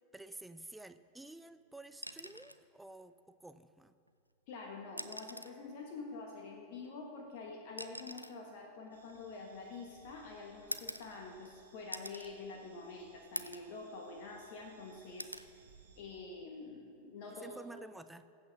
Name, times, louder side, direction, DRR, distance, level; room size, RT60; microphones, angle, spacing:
voice 1, 0.1-3.9 17.3-18.3, right 2 dB, 5° right, 11 dB, 0.4 m, -51 dB
sound 1, 1.9-2.7 4.1-4.2 4.9-5.6 6.8-9.9 10.7-11.5 11.9-12.3 12.8-12.9 13.4-13.7 14.2-14.8 15.2-15.5 17.0-17.2, equal, 90° left, 0.4 m, -45 dB
voice 2, 4.5-15.3 16.0-17.6, left 3 dB, 45° left, 1 dB, 1.3 m, -47 dB
sound 2, 8.9-16.0, right 5 dB, 70° right, 1.4 m, -65 dB
21.0 x 8.2 x 3.5 m, 2.5 s
figure-of-eight pair, 90°, 0 cm